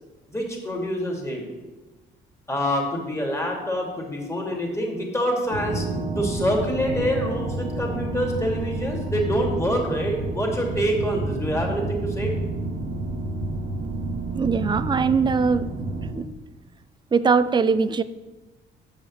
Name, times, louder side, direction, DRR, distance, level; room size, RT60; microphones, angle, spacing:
voice 1, 0.3-1.4 2.5-5.8 6.1-12.3, equal, 15° left, 0 dB, 2.5 m, -26 dB
sound 1, 5.5-16.1, right 2 dB, 65° right, 1.6 m, -29 dB
voice 2, 14.3-15.7 16.2-16.3 17.1-18.0, right 5 dB, 25° right, 13 dB, 0.5 m, -21 dB
7.4 x 5.5 x 7.2 m, 1.1 s
cardioid pair, 90°, 20 cm